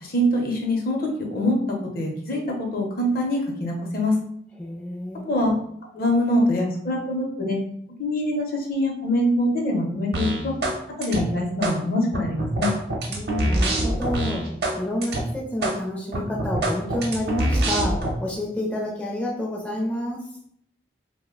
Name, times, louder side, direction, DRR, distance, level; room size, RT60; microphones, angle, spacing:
voice 1, 0.0-1.5 1.9-4.1 5.2-5.5 5.9-7.6 8.0-10.5 11.0-12.7, left 1 dB, 55° left, 0 dB, 0.6 m, -24 dB
voice 2, 4.6-5.3 13.1-14.5 14.7-20.2, left 1 dB, 10° left, -3 dB, 0.4 m, -29 dB
sound 1, 10.1-10.8 11.0-11.8 12.1-14.8 15.0-15.2 15.6-15.8 16.1-18.1, right 1 dB, 55° right, 0.6 m, -24 dB
2.6 x 2.1 x 3.6 m, 0.70 s
head